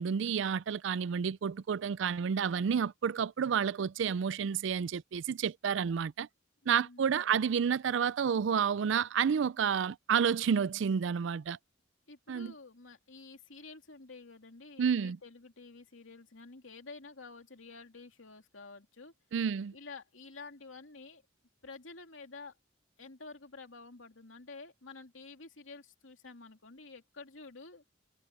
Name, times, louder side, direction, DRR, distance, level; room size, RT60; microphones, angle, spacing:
voice 1, 0.0-6.3 6.7-11.6 12.3-12.5 14.8-15.2 19.3-19.7, right 7 dB, 70° right, 0.4 m, -30 dB
voice 2, 6.6-7.4 12.1-19.1 19.7-21.2 21.6-22.6 23.0-27.8, left 3 dB, 85° left, 2.6 m, -50 dB
head